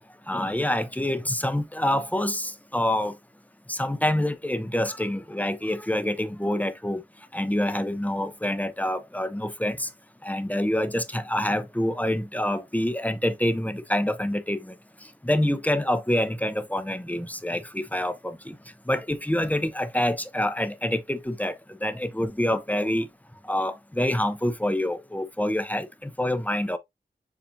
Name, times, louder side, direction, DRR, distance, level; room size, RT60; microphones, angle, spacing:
voice 1, 0.3-3.2 3.7-7.0 7.3-9.9 10.2-14.7 15.2-18.6 18.9-21.5 21.8-23.1 23.5-26.8, left 1 dB, 10° left, 0.6 m, -26 dB
6.8 x 2.5 x 2.7 m
cardioid pair, 50°, 18 cm